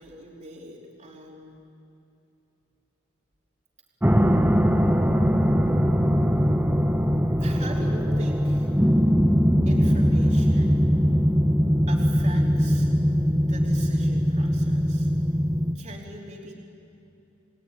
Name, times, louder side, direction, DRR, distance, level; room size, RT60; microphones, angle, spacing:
voice 1, 0.0-1.6 7.3-8.7 9.7-10.8 11.9-12.9 13.4-15.1 15.7-16.5, right 2 dB, 35° right, -3 dB, 3.3 m, -42 dB
sound 1, 4.0-15.7, equal, 10° right, 0.9 m, -21 dB
29.0 x 18.5 x 9.8 m, 2.7 s
head